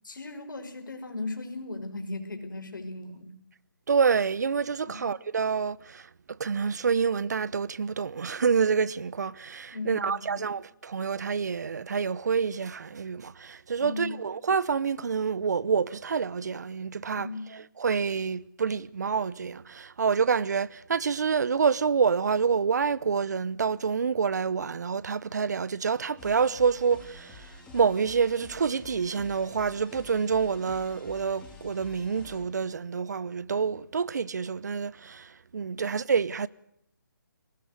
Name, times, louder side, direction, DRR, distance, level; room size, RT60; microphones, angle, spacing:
voice 1, 0.0-3.3 4.9-5.1 9.7-10.5 13.8-14.1 17.1-17.5, left 2 dB, 65° left, 5.4 m, -37 dB
voice 2, 3.9-6.1 6.4-36.5, right 6 dB, 55° right, 0.9 m, -27 dB
sound 1, 26.2-32.4, left 3 dB, 5° left, 3.6 m, -49 dB
23.0 x 19.5 x 6.6 m
hypercardioid pair, 165°, 11 cm